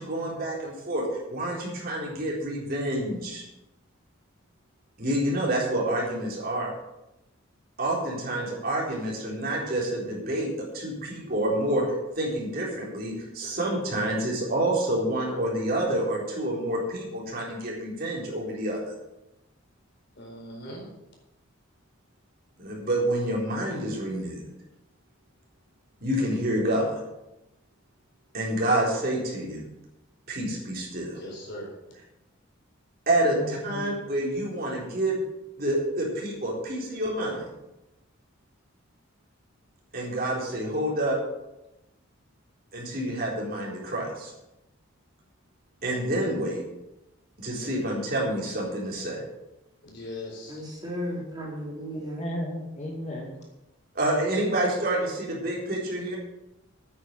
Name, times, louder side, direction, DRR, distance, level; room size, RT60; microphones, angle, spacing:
voice 1, 0.0-3.4 5.0-6.7 7.8-18.9 22.6-24.4 26.0-26.9 28.3-29.6 30.3-31.2 33.1-35.2 35.6-37.5 39.9-41.2 42.7-44.3 45.8-46.6 47.4-49.2 53.9-56.2, right 1 dB, 45° right, -3 dB, 4.0 m, -28 dB
voice 2, 20.2-20.9 31.1-31.7 49.8-50.6, left 1 dB, 55° left, -1 dB, 4.3 m, -39 dB
voice 3, 33.4-33.9 51.9-53.4, left 1 dB, 35° left, -1 dB, 2.2 m, -35 dB
voice 4, 50.5-52.3, equal, 20° right, -3 dB, 3.6 m, -35 dB
9.5 x 9.0 x 7.8 m, 0.94 s
head